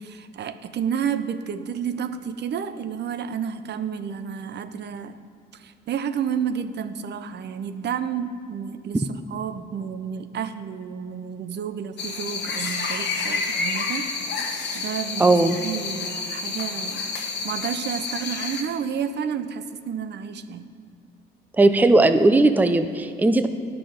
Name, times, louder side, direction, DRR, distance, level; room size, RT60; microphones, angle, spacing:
voice 1, 0.0-5.2 5.5-14.3 14.7-20.7, right 7 dB, 60° right, 11 dB, 0.6 m, -31 dB
sound 1, 12.0-18.6, left 4 dB, 60° left, 1.2 m, -29 dB
voice 2, 15.2-15.6 21.6-23.5, right 2 dB, 10° right, 9 dB, 0.5 m, -17 dB
11.5 x 6.0 x 5.0 m, 2.3 s
cardioid pair, 90°, 20 cm